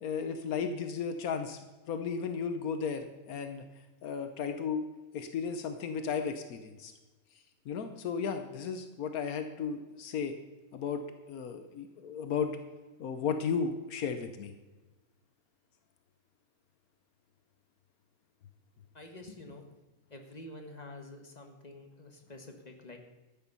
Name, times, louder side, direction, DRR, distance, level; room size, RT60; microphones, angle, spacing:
voice 1, 0.0-1.6 1.9-3.6 4.0-4.8 5.1-6.9 7.6-10.4 10.7-12.5 13.0-14.5, left 6 dB, 85° left, 8 dB, 1.3 m, -34 dB
voice 2, 18.9-19.7 20.1-23.0, left 2 dB, 30° left, 4 dB, 1.5 m, -48 dB
13.0 x 9.1 x 5.4 m, 1.2 s
omnidirectional pair, 1.5 m